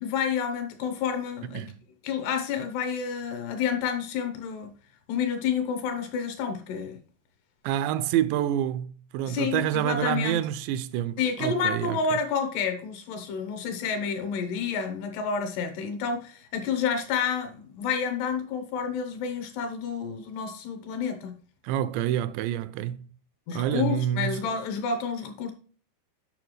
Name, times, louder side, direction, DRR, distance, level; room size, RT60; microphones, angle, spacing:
voice 1, 0.0-1.6 2.0-4.7 5.1-7.0 9.3-10.4 11.2-21.4 23.5-25.5, left 6 dB, 70° left, 3.1 m, -29 dB
voice 2, 7.6-12.0 21.6-23.0 23.5-24.4, right 11 dB, 85° right, 2.7 m, -27 dB
9.2 x 5.7 x 3.1 m
omnidirectional pair, 5.1 m